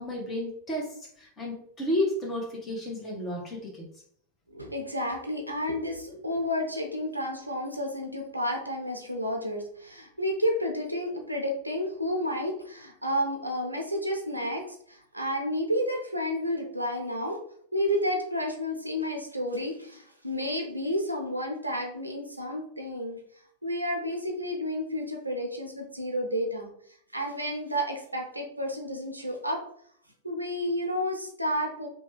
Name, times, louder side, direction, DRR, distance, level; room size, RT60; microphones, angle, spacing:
voice 1, 0.0-3.9, left 1 dB, 25° left, -2 dB, 1.1 m, -32 dB
voice 2, 4.5-17.4 17.7-23.2 23.6-26.7 27.1-29.6 30.2-31.9, equal, 85° right, 2 dB, 0.5 m, -31 dB
2.9 x 2.3 x 3.0 m, 0.63 s
figure-of-eight pair, 90°, 0 cm